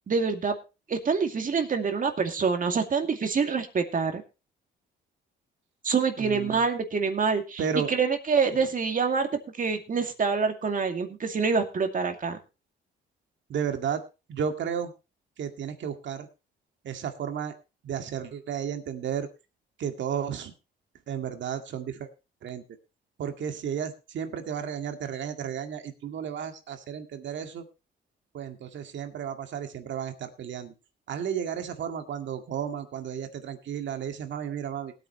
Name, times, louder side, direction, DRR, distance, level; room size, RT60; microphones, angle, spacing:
voice 1, 0.1-0.6 0.9-4.2 5.8-7.6 7.9-12.4, right 5 dB, 45° right, 5 dB, 2.4 m, -26 dB
voice 2, 6.2-6.6 7.6-7.9 13.5-14.0 14.3-14.9 15.4-16.3 16.8-17.5 17.8-19.3 19.8-20.5 21.1-22.1 22.4-22.6 23.2-27.7 28.3-30.7 31.1-34.9, right 8 dB, 70° right, 6 dB, 2.0 m, -33 dB
19.5 x 9.1 x 3.1 m, 0.29 s
cardioid pair, 90°, 20 cm